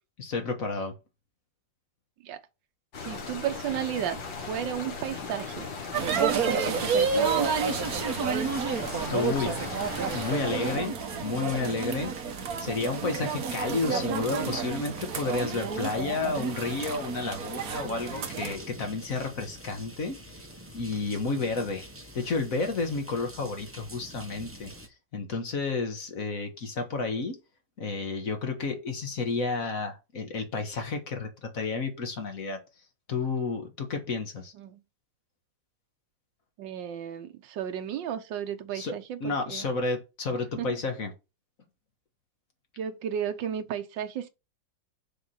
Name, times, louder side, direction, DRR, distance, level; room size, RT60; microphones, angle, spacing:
voice 1, 0.2-0.9 9.1-9.6 10.1-10.9 11.2-12.1 12.6-20.2 20.7-21.8 22.1-24.7 25.1-27.3 27.8-32.6 33.1-34.5 38.7-38.9 39.2-41.1, left 3 dB, 50° left, 1.8 m, -31 dB
sound 1, 2.9-10.8, left 4 dB, 90° left, 2.3 m, -38 dB
voice 2, 3.0-5.7 6.2-7.5 34.6-34.8 36.6-39.7 40.6-40.8 42.8-44.3, right 10 dB, 80° right, 1.5 m, -33 dB
sound 2, 5.9-18.6, right 6 dB, 55° right, 1.4 m, -30 dB
sound 3, 6.1-24.9, equal, 10° right, 0.7 m, -46 dB
6.8 x 3.7 x 6.3 m
omnidirectional pair, 2.0 m